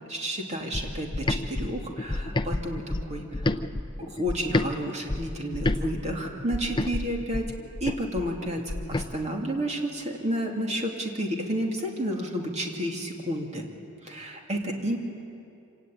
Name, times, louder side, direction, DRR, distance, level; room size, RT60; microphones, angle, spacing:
voice 1, 0.1-7.5 7.8-13.6 14.0-15.0, equal, 30° right, 1 dB, 2.7 m, -31 dB
sound 1, 0.7-4.7 5.1-9.1, left 2 dB, 20° left, 0.6 m, -30 dB
26.0 x 18.0 x 8.8 m, 2.6 s
head